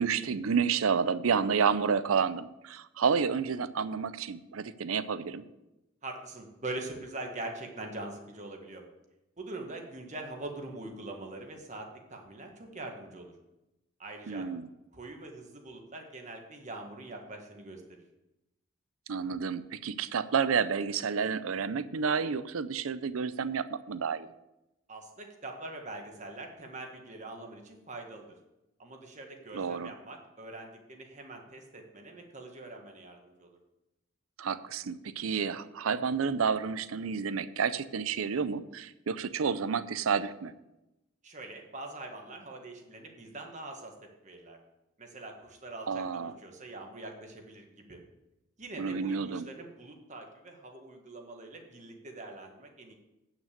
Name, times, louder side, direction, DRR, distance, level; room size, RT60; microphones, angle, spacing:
voice 1, 0.0-5.4 14.3-14.7 19.1-24.3 29.5-29.9 34.4-40.5 45.9-46.3 48.8-49.5, right 6 dB, 80° right, 15 dB, 0.5 m, -30 dB
voice 2, 6.0-8.9 9.4-13.3 14.0-14.5 14.9-18.0 24.9-28.4 28.8-33.6 41.2-43.9 44.2-44.6 45.0-48.0 48.6-52.9, right 2 dB, 35° right, 2 dB, 1.5 m, -43 dB
9.1 x 6.1 x 6.6 m, 0.94 s
head